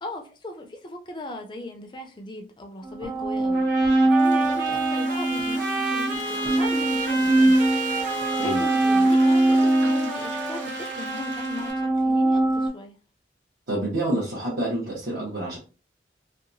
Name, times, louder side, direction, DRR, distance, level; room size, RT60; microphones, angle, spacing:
voice 1, 0.0-3.6 4.2-7.6 8.4-13.0, left 2 dB, 25° left, 0.4 m, -38 dB
sound 1, 2.8-12.7, right 2 dB, 25° right, 0.5 m, -23 dB
sound 2, 3.5-11.9, right 2 dB, 50° right, 0.9 m, -31 dB
Frying (food), 3.8-11.7, right 3 dB, 85° right, 0.7 m, -42 dB
voice 2, 13.7-15.6, right 1 dB, 65° right, 1.1 m, -28 dB
2.7 x 2.3 x 2.6 m
head